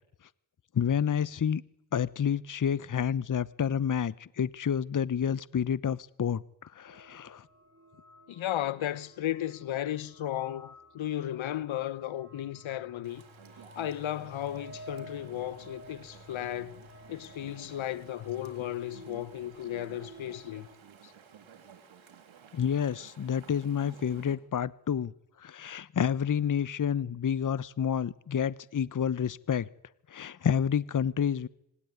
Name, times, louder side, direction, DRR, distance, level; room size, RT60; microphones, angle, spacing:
voice 1, 0.7-1.6 1.9-6.4 6.8-7.4 22.5-25.1 25.4-29.7 30.1-31.5, left 8 dB, 40° left, 0.9 m, -29 dB
sound 1, 6.9-20.8, equal, 25° right, 6.4 m, -52 dB
voice 2, 8.3-13.2 13.8-16.8 17.1-20.7, left 12 dB, 75° left, 1.1 m, -35 dB
Chatter / Stream, 13.0-24.4, right 7 dB, 75° right, 3.8 m, -54 dB
25.0 x 18.5 x 9.7 m
supercardioid pair, 50°, 48 cm